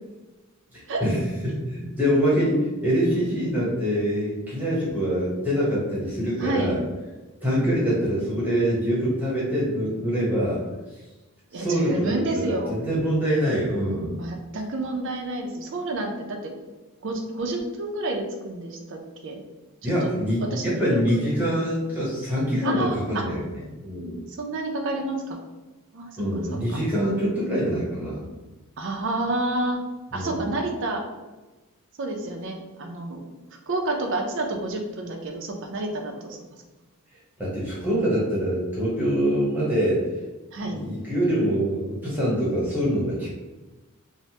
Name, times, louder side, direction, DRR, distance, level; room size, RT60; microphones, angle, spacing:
voice 1, 0.7-6.8 7.4-10.6 11.5-14.2 19.8-23.4 23.8-24.2 26.2-28.2 30.1-30.4 37.4-40.0 40.6-43.3, equal, 5° right, -7 dB, 0.9 m, -24 dB
voice 2, 6.4-6.9 11.5-12.7 14.2-16.5 17.0-19.4 19.8-20.1 20.5-21.0 22.6-23.3 24.4-25.4 25.9-26.8 28.8-29.8 30.1-31.0 32.0-33.2 33.5-36.4 40.5-40.8, right 2 dB, 55° right, 2 dB, 0.5 m, -29 dB
3.1 x 2.1 x 2.8 m, 1.2 s
head